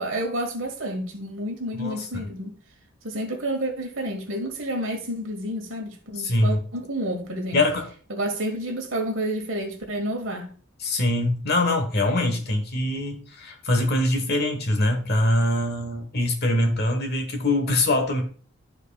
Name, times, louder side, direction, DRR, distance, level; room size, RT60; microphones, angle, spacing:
voice 1, 0.0-2.5 3.0-7.6 8.1-10.5, right 1 dB, 55° right, 1.6 m, -30 dB
voice 2, 1.8-2.3 6.2-6.6 7.5-7.9 10.8-18.2, left 1 dB, 45° left, 1.2 m, -23 dB
12.5 x 4.6 x 2.3 m
head